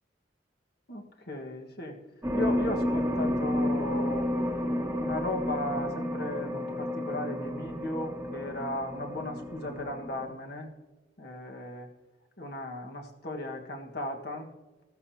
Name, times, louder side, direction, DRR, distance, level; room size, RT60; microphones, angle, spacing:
voice 1, 0.9-2.0 2.3-4.3 5.0-10.7 11.2-11.9 12.4-14.5, left 1 dB, 60° left, 3 dB, 1.5 m, -36 dB
sound 1, 2.2-10.3, equal, 10° right, 1.4 m, -31 dB
15.5 x 13.5 x 2.8 m, 1.2 s
head